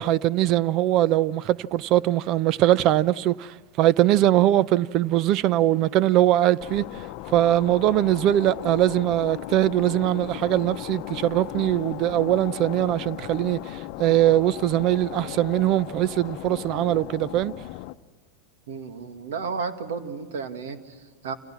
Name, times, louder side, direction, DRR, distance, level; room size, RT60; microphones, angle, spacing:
voice 1, 0.0-6.9 7.3-13.6 14.0-17.5, right 13 dB, 50° right, 0.7 m, -21 dB
sound 1, 6.6-17.9, left 16 dB, 55° left, 0.8 m, -36 dB
voice 2, 18.7-21.3, right 5 dB, 75° right, 2.3 m, -33 dB
29.0 x 28.5 x 6.1 m
hypercardioid pair, 95°, 0 cm